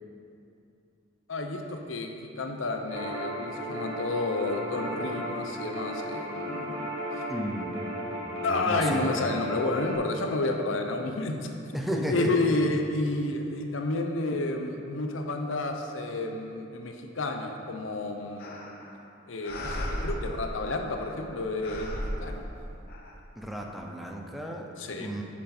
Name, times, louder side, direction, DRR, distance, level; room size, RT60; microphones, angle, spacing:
voice 1, 1.3-6.9 8.4-11.5 11.9-18.6 19.3-22.5 24.8-25.1, left 2 dB, 85° left, 4 dB, 0.8 m, -30 dB
sound 1, 2.9-10.0, equal, 80° right, 1.8 m, -35 dB
voice 2, 7.3-7.8 8.3-9.2 11.7-12.4 23.4-24.6 25.0-25.2, equal, ahead, 0 dB, 0.6 m, -33 dB
sound 2, 18.4-19.0 19.4-21.3 21.6-23.1, left 1 dB, 50° left, 0.9 m, -36 dB
9.6 x 6.3 x 4.3 m, 2.7 s
head